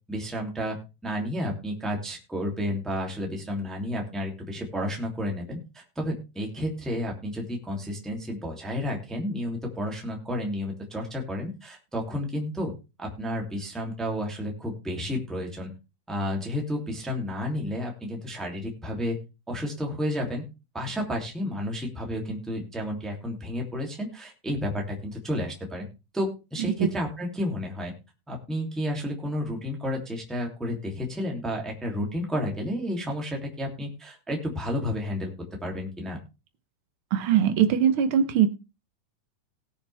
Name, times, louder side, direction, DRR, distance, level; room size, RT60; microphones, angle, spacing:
voice 1, 0.1-0.8 1.0-12.7 13.0-15.7 16.1-19.2 19.5-20.4 20.7-25.9 26.1-27.9 28.3-35.3 35.6-36.2, left 1 dB, ahead, 0 dB, 2.4 m, -31 dB
voice 2, 37.1-38.5, right 9 dB, 75° right, 10 dB, 1.2 m, -21 dB
19.0 x 6.9 x 3.5 m, 0.29 s
omnidirectional pair, 3.7 m